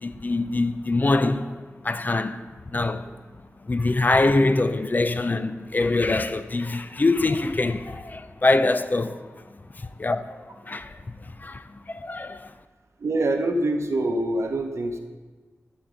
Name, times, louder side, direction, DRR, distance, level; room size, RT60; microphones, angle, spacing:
voice 1, 0.0-1.5 1.8-2.4 2.7-3.1 3.6-9.2 9.8-10.4 10.7-11.0 11.4-12.5, left 2 dB, 40° left, 0.5 m, -24 dB
voice 2, 13.0-15.0, right 1 dB, 70° right, 0.8 m, -25 dB
13.0 x 4.4 x 5.1 m
wide cardioid pair, 65°, 5 cm